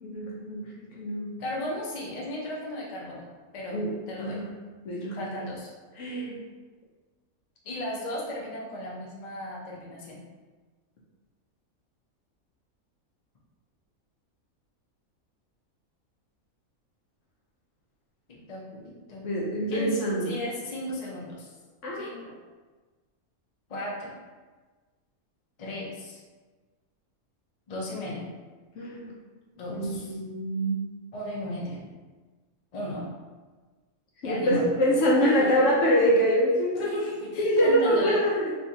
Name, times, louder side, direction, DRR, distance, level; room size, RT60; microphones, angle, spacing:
voice 1, 0.0-1.3 3.7-3.9 4.2-4.5 4.9-5.3 6.0-6.4 19.2-20.4 21.8-22.2 28.8-29.1 29.7-30.9 34.2-36.9 37.4-38.7, equal, 65° left, -3 dB, 0.9 m, -25 dB
voice 2, 1.4-3.3 3.5-3.8 4.1-4.4 5.1-5.7 7.6-10.2 18.5-19.3 19.7-21.5 21.9-22.3 23.7-24.1 25.6-26.2 27.7-28.2 29.6-30.2 31.1-31.8 32.7-33.1 34.2-34.8 35.2-35.5 36.7-38.2, left 1 dB, 40° left, -4 dB, 0.6 m, -35 dB
3.3 x 3.1 x 2.7 m, 1.3 s
omnidirectional pair, 1.5 m